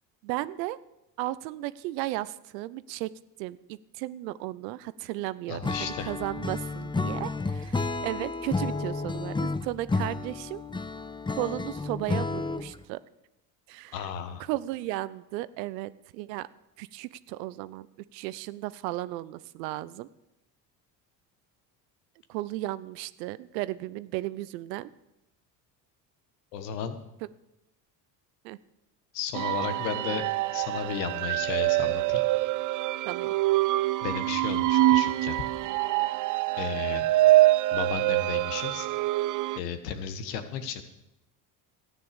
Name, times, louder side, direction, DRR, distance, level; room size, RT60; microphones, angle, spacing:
voice 1, 0.2-0.8 1.2-3.1 3.4-10.6 11.4-13.0 13.7-14.0 14.4-16.5 16.8-17.9 18.1-20.1 22.3-24.9 28.4-28.6 33.1-33.3, right 16 dB, 75° right, 17 dB, 0.8 m, -35 dB
voice 2, 5.5-6.1 13.9-14.4 26.5-27.0 29.1-30.3 30.5-32.2 34.0-35.4 36.6-37.1 37.7-38.9 39.6-40.8, left 7 dB, 80° left, 9 dB, 1.6 m, -34 dB
Acoustic guitar / Strum, 5.6-12.8, left 3 dB, 10° left, 0.6 m, -31 dB
sound 1, 29.3-39.6, right 16 dB, 40° right, 0.5 m, -25 dB
13.5 x 9.6 x 7.0 m, 0.91 s
hypercardioid pair, 65°, 50 cm